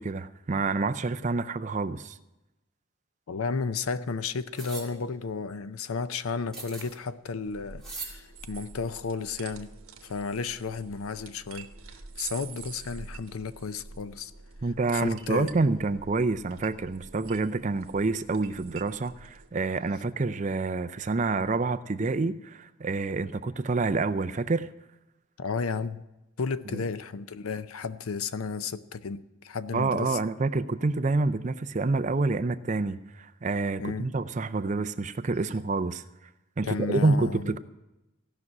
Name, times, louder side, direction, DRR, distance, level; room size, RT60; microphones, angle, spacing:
voice 1, 0.0-2.2 14.6-24.7 26.7-26.8 29.7-36.0 36.6-37.6, right 3 dB, 35° right, 0.4 m, -28 dB
voice 2, 3.3-9.7 10.0-11.7 12.2-14.3 14.9-15.5 25.4-26.0 26.4-30.2 33.8-34.1 36.6-37.6, left 5 dB, 85° left, 0.6 m, -33 dB
sound 1, 4.5-4.9 6.5-7.0 7.8-8.2, right 3 dB, ahead, 2.2 m, -39 dB
sound 2, 7.4-19.5, right 5 dB, 80° right, 1.1 m, -47 dB
16.0 x 6.0 x 9.6 m
head